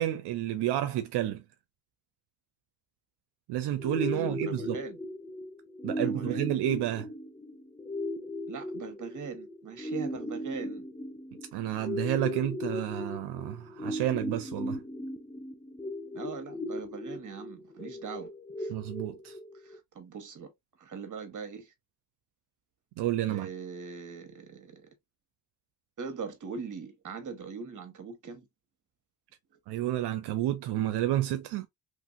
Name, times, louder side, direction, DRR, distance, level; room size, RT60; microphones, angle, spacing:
voice 1, 0.0-1.4 3.5-4.8 5.8-7.1 11.5-14.8 18.7-19.4 23.0-23.5 29.7-31.7, right 13 dB, 90° right, 0.5 m, -30 dB
sound 1, 3.8-19.8, left 1 dB, 10° left, 0.6 m, -37 dB
voice 2, 4.1-5.0 6.0-6.5 8.4-10.9 16.1-18.3 18.6-18.7 19.5-20.5 20.8-21.7 23.3-24.9 26.0-28.4, right 6 dB, 50° right, 1.2 m, -41 dB
3.1 x 2.6 x 2.5 m
cardioid pair, 75°, 39 cm